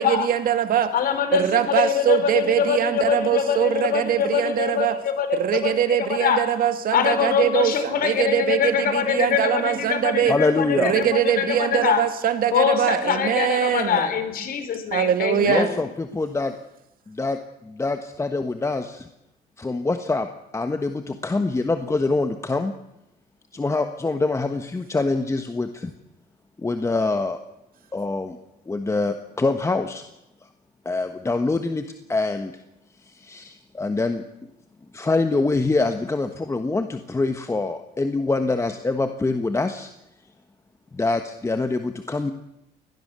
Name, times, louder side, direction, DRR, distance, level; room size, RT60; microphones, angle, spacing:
voice 1, 0.0-0.9 1.3-5.0 5.3-10.3 10.7-14.1 14.9-15.7, right 9 dB, 60° right, 9 dB, 2.2 m, -22 dB
voice 2, 0.9-6.4 6.9-12.0 12.5-15.8, left 7 dB, 60° left, 9 dB, 3.9 m, -24 dB
voice 3, 10.3-10.9 15.4-16.5 17.1-19.1 19.6-20.3 20.5-22.7 23.5-25.9 26.6-27.4 27.9-28.4 28.7-30.0 30.8-32.5 33.1-34.2 34.9-39.9 40.9-42.3, left 3 dB, 15° left, 7 dB, 1.3 m, -25 dB
22.5 x 19.0 x 6.8 m, 0.87 s
cardioid pair, 110°, 17 cm